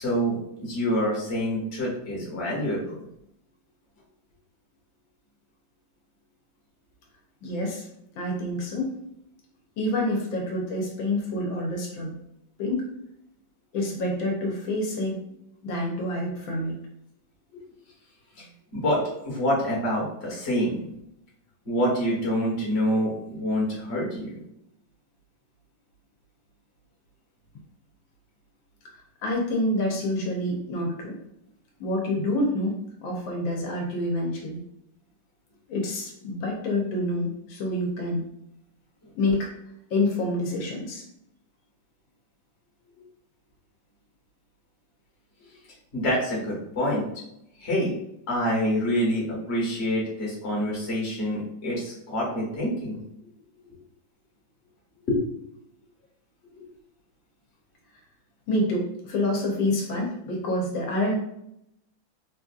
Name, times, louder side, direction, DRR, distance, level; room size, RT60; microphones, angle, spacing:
voice 1, 0.0-3.0 18.4-18.5 18.7-20.8 21.6-24.4 45.9-47.0 47.6-48.0 48.3-53.0 55.1-55.2 56.5-56.7, equal, 35° left, -4 dB, 1.3 m, -26 dB
voice 2, 7.4-7.9 8.2-8.9 9.8-12.1 12.6-12.8 13.7-15.2 15.6-16.8 29.2-31.2 31.8-32.8 33.0-34.6 35.7-38.3 39.2-39.5 39.9-41.0 58.5-61.2, left 1 dB, 80° left, 0 dB, 1.5 m, -27 dB
4.2 x 2.6 x 2.4 m, 0.79 s
omnidirectional pair, 2.1 m